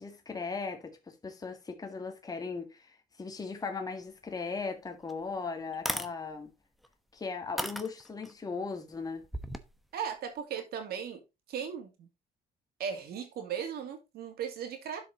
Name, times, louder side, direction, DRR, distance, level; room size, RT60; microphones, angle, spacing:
voice 1, 0.0-6.5 7.1-9.2, left 4 dB, 20° left, 1.9 m, -38 dB
sound 1, 4.6-4.7 5.1-5.2 5.7-6.1 6.8-6.9 7.6-8.3 9.2-9.7, equal, ahead, 0.9 m, -34 dB
voice 2, 9.9-11.2 11.5-12.1 12.8-15.0, right 8 dB, 65° right, 2.7 m, -37 dB
11.5 x 5.0 x 3.9 m
cardioid pair, 110°, 17 cm